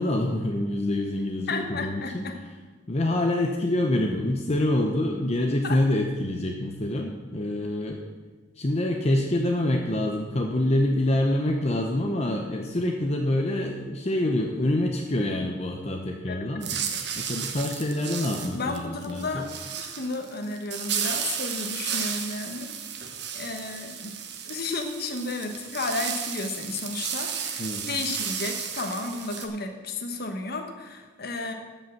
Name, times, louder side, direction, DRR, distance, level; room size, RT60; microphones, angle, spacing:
voice 1, 0.0-2.2 2.9-8.0 8.6-16.8 17.1-19.5 27.6-27.9, left 1 dB, 35° left, 2 dB, 0.8 m, -26 dB
voice 2, 1.5-2.3 5.6-5.8 16.3-16.4 18.5-19.5 19.8-22.7 23.3-24.1 24.4-31.5, left 3 dB, 55° left, 4 dB, 1.2 m, -33 dB
sound 1, 16.6-29.5, right 7 dB, 60° right, 1.2 m, -33 dB
13.5 x 5.5 x 7.1 m, 1.3 s
head